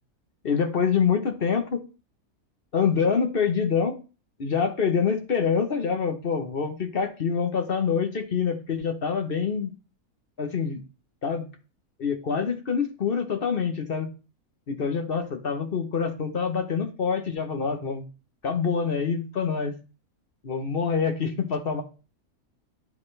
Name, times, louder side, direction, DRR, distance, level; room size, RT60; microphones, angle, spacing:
voice 1, 0.4-1.8 2.7-4.0 4.4-9.7 10.4-10.8 11.2-11.5 12.0-14.1 14.7-18.0 18.4-19.7 20.4-21.8, left 6 dB, 45° left, 5 dB, 0.9 m, -26 dB
9.9 x 4.2 x 3.2 m, 0.33 s
omnidirectional pair, 1.6 m